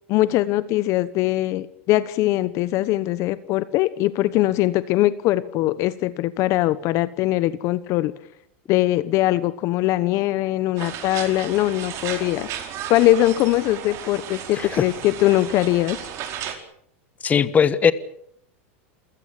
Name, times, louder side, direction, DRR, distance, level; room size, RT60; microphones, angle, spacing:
voice 1, 0.1-8.1 8.7-12.5 12.9-16.0, left 16 dB, 50° left, 15 dB, 1.1 m, -21 dB
sound 1, 10.8-16.5, right 10 dB, 45° right, 4.7 m, -34 dB
voice 2, 14.5-14.8 17.2-17.9, left 7 dB, 20° left, 15 dB, 1.4 m, -19 dB
28.0 x 16.0 x 8.7 m, 0.72 s
supercardioid pair, 125°, 7 cm